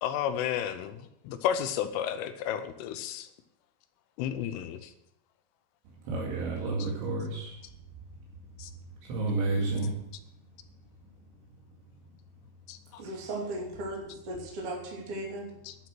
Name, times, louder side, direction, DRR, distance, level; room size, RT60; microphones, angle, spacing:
voice 1, 0.0-1.0 1.2-3.3 4.2-4.9 6.8-6.9 8.6-8.7 12.7-13.0 15.6-15.8, left 9 dB, 80° left, 10 dB, 3.2 m, -32 dB
voice 2, 6.1-7.6 9.1-9.9, right 3 dB, 75° right, -3 dB, 4.4 m, -30 dB
voice 3, 13.0-14.0 14.3-15.5, right 1 dB, 35° right, -1 dB, 2.7 m, -36 dB
12.0 x 7.9 x 6.1 m, 0.78 s
omnidirectional pair, 5.7 m